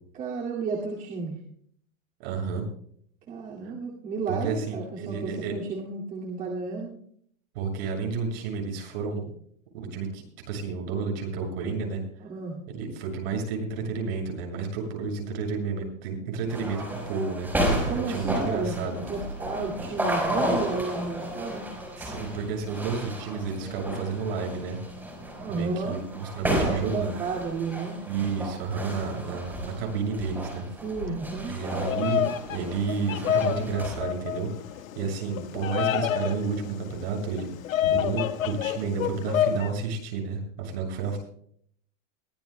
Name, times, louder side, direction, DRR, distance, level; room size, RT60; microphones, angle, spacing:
voice 1, 0.1-1.3 3.3-7.0 12.2-12.6 17.9-21.7 25.4-26.0 26.6-28.0 30.8-31.6, right 4 dB, 20° right, -3 dB, 2.3 m, -32 dB
voice 2, 2.2-2.6 3.6-3.7 4.3-5.5 7.5-9.3 9.7-12.0 12.7-19.0 22.0-24.8 25.5-27.2 28.1-30.6 31.5-32.2 32.5-34.5 34.9-37.5 37.9-41.2, right 5 dB, 50° right, 1 dB, 6.9 m, -31 dB
sound 1, 16.5-34.0, equal, 5° right, 4.5 m, -33 dB
Bird vocalization bird call bird song, 31.7-39.7, left 10 dB, 80° left, 1.6 m, -29 dB
22.5 x 16.0 x 2.2 m, 0.62 s
supercardioid pair, 165°, 40 cm